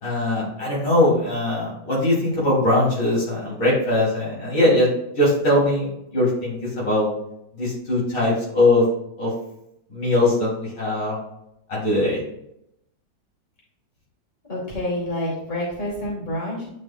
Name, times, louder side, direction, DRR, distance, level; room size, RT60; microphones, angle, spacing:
voice 1, 0.0-4.9 5.2-7.1 7.5-8.8 9.2-9.3 9.9-11.2 11.7-12.2, left 1 dB, 75° left, -6 dB, 3.6 m, -21 dB
voice 2, 14.5-16.7, left 1 dB, 25° left, -6 dB, 2.7 m, -28 dB
9.7 x 5.5 x 2.3 m, 0.80 s
omnidirectional pair, 1.9 m